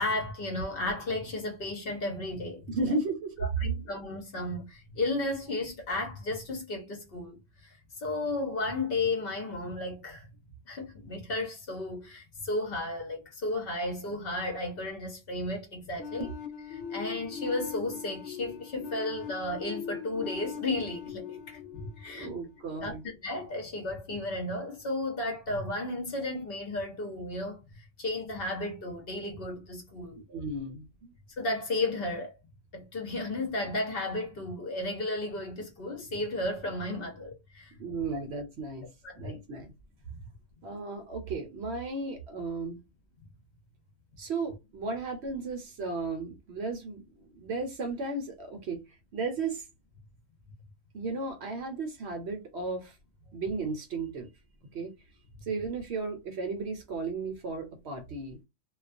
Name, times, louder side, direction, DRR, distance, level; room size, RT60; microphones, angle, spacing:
voice 1, 0.0-2.7 3.4-10.3 10.7-16.3 16.7-22.4 22.8-30.2 31.4-32.3 32.7-37.7 38.1-38.2 39.0-39.4 40.1-40.2, left 2 dB, 55° left, 0.8 m, -34 dB
voice 2, 2.7-3.3 16.2-16.3 22.1-23.0 30.3-31.1 37.8-38.9 39.1-39.7 40.6-42.8 44.2-48.8 49.1-49.7 50.9-53.0 53.3-54.3 54.7-54.9 55.4-58.4, right 3 dB, 60° right, 0.8 m, -34 dB
sound 1, 16.0-22.8, left 7 dB, 75° left, 1.0 m, -40 dB
2.3 x 2.2 x 2.4 m
omnidirectional pair, 1.4 m